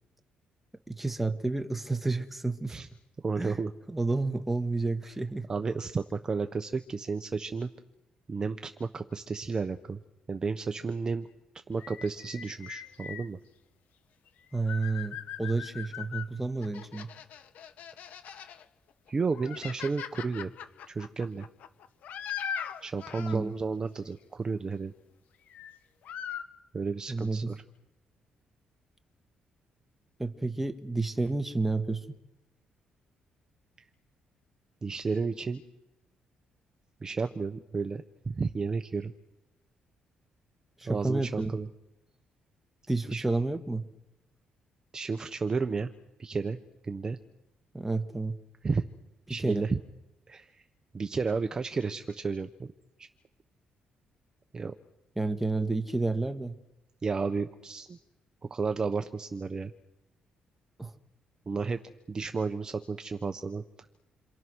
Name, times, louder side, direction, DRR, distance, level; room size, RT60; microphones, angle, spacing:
voice 1, 0.9-2.8 3.4-3.6 3.9-5.5 14.5-17.1 23.2-23.5 27.1-27.5 30.2-32.2 40.8-41.6 42.9-43.8 47.7-48.4 49.3-49.7 55.2-56.6 60.8-60.9, right 3 dB, 5° right, 7 dB, 1.6 m, -30 dB
voice 2, 3.2-3.7 5.5-7.7 8.3-10.0 10.3-11.3 11.7-13.4 19.1-20.5 20.9-21.5 22.8-24.9 26.7-27.6 34.8-35.6 37.0-39.1 40.9-41.7 43.1-43.2 44.9-45.9 46.2-46.6 46.8-47.2 48.6-48.9 49.3-49.8 50.3-50.6 50.9-52.7 53.0-53.1 54.5-54.7 57.0-58.0 58.5-59.7 61.5-61.8 62.1-63.6, right 4 dB, 25° right, 7 dB, 1.1 m, -32 dB
sound 1, 11.8-13.3 14.3-16.3 16.6-18.6 19.1-23.4 25.5-25.8 26.0-26.4, left 8 dB, 70° left, 1.7 m, -40 dB
28.5 x 26.0 x 6.4 m, 0.93 s
cardioid pair, 140°, 3 cm